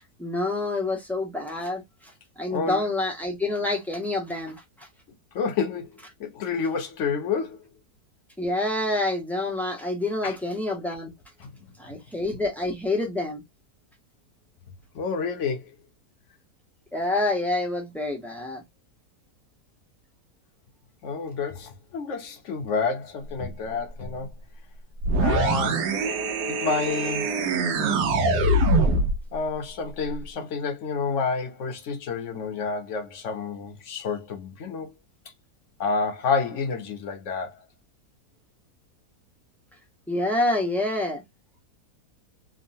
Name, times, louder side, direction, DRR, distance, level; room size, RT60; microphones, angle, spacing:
voice 1, 0.2-1.8 2.4-4.6 8.4-11.1 11.8-13.4 16.9-18.6 40.1-41.2, left 2 dB, 5° left, 0.3 m, -27 dB
voice 2, 2.5-2.9 5.3-5.9 6.2-7.6 10.2-10.4 11.4-11.5 14.9-15.7 21.0-24.3 25.2-25.8 26.5-27.3 27.8-28.1 29.3-34.9 35.8-37.6, left 5 dB, 60° left, 0.8 m, -29 dB
sound 1, 25.0-29.2, right 2 dB, 90° right, 1.3 m, -23 dB
3.6 x 2.1 x 2.6 m
omnidirectional pair, 1.7 m